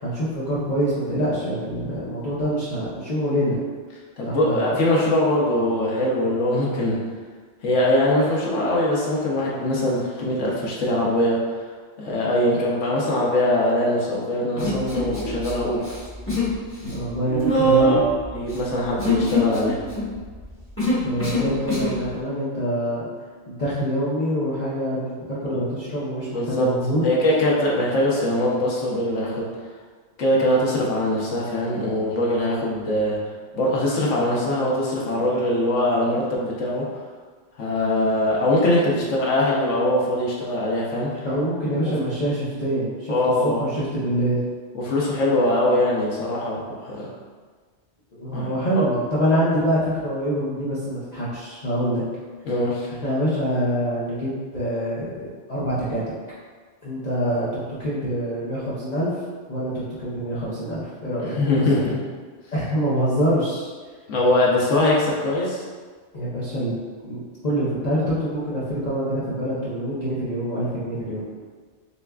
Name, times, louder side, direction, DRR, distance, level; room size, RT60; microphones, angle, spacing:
voice 1, 0.0-3.6 4.2-4.7 16.9-18.1 21.0-23.1 23.5-27.0 41.2-44.4 48.1-52.0 53.0-56.0 56.8-59.1 59.5-61.4 62.5-63.7 66.1-66.8 67.0-71.2, equal, 40° left, -10 dB, 0.8 m, -25 dB
voice 2, 4.2-7.0 7.6-11.4 12.0-15.9 17.8-19.8 25.4-25.6 26.3-26.7 27.0-29.4 30.2-33.2 33.5-36.8 37.6-41.1 43.1-43.6 44.7-47.1 48.3-48.9 52.4-52.9 61.4-62.0 64.1-65.6, left 1 dB, 85° left, -4 dB, 1.1 m, -22 dB
Human voice, 14.6-15.5 15.8-16.5 16.8-22.0, equal, 10° left, 1.1 m, -23 dB
6.6 x 2.3 x 2.3 m, 1.5 s
omnidirectional pair, 1.2 m